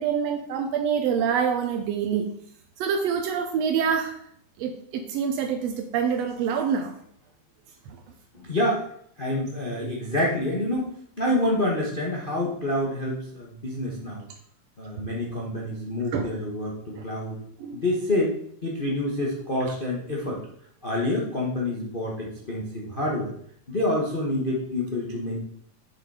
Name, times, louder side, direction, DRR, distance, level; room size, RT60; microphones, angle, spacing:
voice 1, 0.0-2.3 2.8-4.2 4.6-7.0 16.1-16.3 17.6-17.8, right 7 dB, 80° right, 4 dB, 1.5 m, -26 dB
voice 2, 8.3-8.8 9.2-14.2 14.8-17.4 17.7-18.3 18.6-20.4 20.8-23.3 23.7-25.4, left 1 dB, 80° left, -3 dB, 0.4 m, -27 dB
7.1 x 6.7 x 4.9 m, 0.67 s
omnidirectional pair, 3.8 m